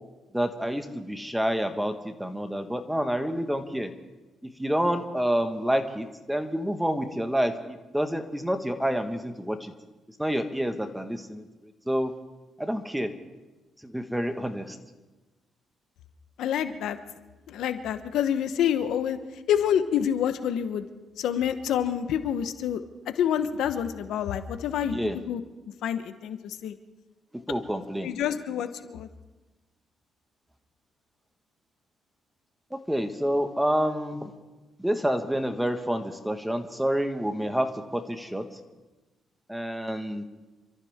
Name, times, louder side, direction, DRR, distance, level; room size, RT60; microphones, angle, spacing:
voice 1, 0.3-3.9 4.6-9.7 10.2-12.2 12.6-13.1 13.8-14.8 24.9-25.2 27.5-28.1 32.7-34.3 34.8-38.5 39.5-40.2, equal, 5° right, 7 dB, 1.6 m, -28 dB
voice 2, 16.4-17.0 17.5-19.2 19.5-20.8 21.2-22.8 23.2-25.4 25.8-26.7 28.0-29.1, left 9 dB, 80° left, 10 dB, 1.0 m, -27 dB
28.5 x 14.0 x 3.7 m, 1.2 s
cardioid pair, 90°, 0 cm